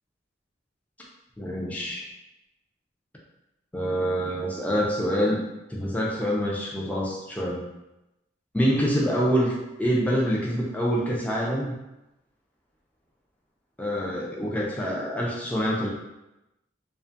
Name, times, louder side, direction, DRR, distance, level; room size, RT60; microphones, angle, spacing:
voice 1, 1.4-2.1 3.7-5.4 5.7-7.6 8.5-11.7 13.8-15.9, equal, 10° left, -4 dB, 0.4 m, -26 dB
2.5 x 2.3 x 2.5 m, 0.95 s
head